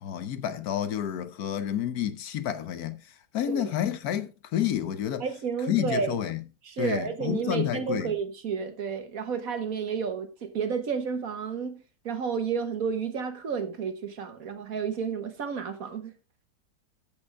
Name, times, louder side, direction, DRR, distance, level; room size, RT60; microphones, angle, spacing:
voice 1, 0.0-3.0 3.3-5.2 5.7-6.4 6.8-8.1, left 10 dB, 70° left, 1.2 m, -29 dB
voice 2, 5.2-6.1 6.7-16.1, right 6 dB, 60° right, 1.5 m, -31 dB
14.5 x 5.4 x 3.4 m
omnidirectional pair, 1.7 m